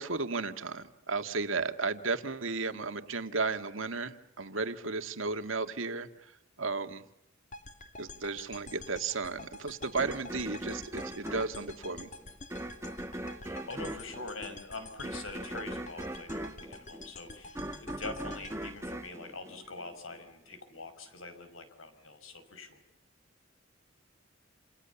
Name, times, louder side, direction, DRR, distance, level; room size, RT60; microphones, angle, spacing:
voice 1, 0.0-6.1 6.6-7.0 8.0-12.1, right 4 dB, 75° right, 8 dB, 2.0 m, -34 dB
sound 1, 7.5-19.7, left 2 dB, 40° left, 2.3 m, -48 dB
sound 2, 10.0-20.2, right 1 dB, 15° right, 1.4 m, -40 dB
voice 2, 13.4-22.8, left 3 dB, 85° left, 9 dB, 5.6 m, -44 dB
28.5 x 28.0 x 7.1 m, 0.81 s
head